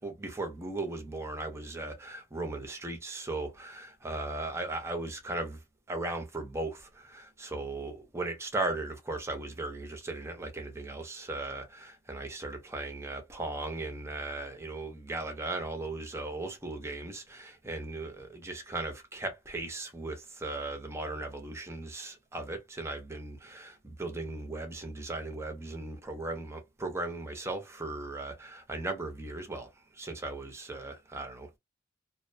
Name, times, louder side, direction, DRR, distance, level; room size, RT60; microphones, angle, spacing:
voice 1, 0.0-5.6 5.9-29.7 29.9-31.6, right 2 dB, 15° right, 0.6 m, -37 dB
2.5 x 2.1 x 2.5 m
head